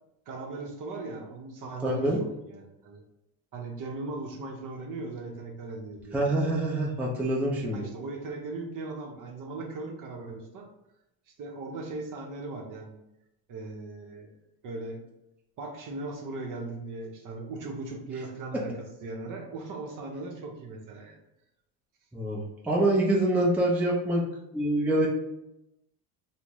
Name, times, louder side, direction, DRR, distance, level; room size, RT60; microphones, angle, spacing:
voice 1, 0.3-2.2 2.4-3.0 3.5-6.2 7.7-10.7 11.4-13.0 13.5-14.3 14.6-15.0 15.6-18.7 19.0-21.2, right 3 dB, 45° right, 2 dB, 0.7 m, -38 dB
voice 2, 1.8-2.2 6.1-7.9 22.1-24.2 24.5-25.1, right 1 dB, 5° right, -4 dB, 0.4 m, -25 dB
3.7 x 2.1 x 3.0 m, 0.87 s
cardioid pair, 125°, 44 cm